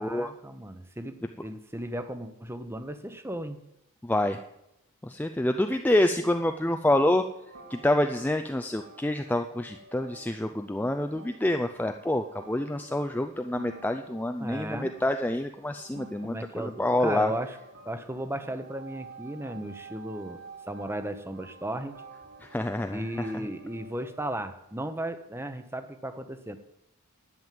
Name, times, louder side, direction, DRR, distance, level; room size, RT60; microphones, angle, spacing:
voice 1, 0.0-3.6 14.4-14.9 16.2-17.6 17.8-20.4 20.7-22.0 22.9-26.6, right 1 dB, 10° right, 10 dB, 0.8 m, -35 dB
voice 2, 4.0-4.4 5.0-7.2 7.7-17.3 22.4-23.3, left 1 dB, 10° left, 6 dB, 0.4 m, -27 dB
sound 1, 6.4-24.2, right 3 dB, 85° right, 4.2 m, -50 dB
11.0 x 8.9 x 7.6 m, 0.84 s
head